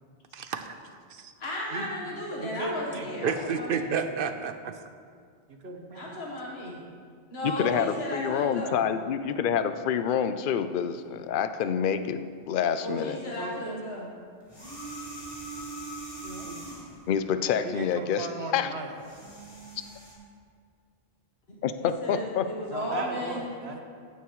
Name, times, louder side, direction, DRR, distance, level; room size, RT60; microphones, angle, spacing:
voice 1, 0.3-0.8 1.1-1.3 1.7-1.8 3.2-4.8, right 6 dB, 65° right, 8 dB, 0.8 m, -31 dB
voice 2, 1.4-3.9 5.9-6.8 7.3-8.8 12.8-14.1 16.2-16.5 21.8-23.5, left 1 dB, 85° left, -3 dB, 1.6 m, -35 dB
voice 3, 2.4-3.1 5.5-6.1 13.2-13.8 16.4-16.6 17.6-19.0 19.2-19.4 22.7-23.8, right 2 dB, 90° right, 3 dB, 1.4 m, -37 dB
voice 4, 7.4-13.2 17.1-18.3 18.5-18.7 21.6-22.5, left 8 dB, 60° left, 11 dB, 0.7 m, -27 dB
sound 1, 14.4-17.0 18.8-20.1, right 2 dB, 30° left, 3.4 m, -41 dB
15.5 x 9.4 x 3.1 m, 2.1 s
omnidirectional pair, 1.0 m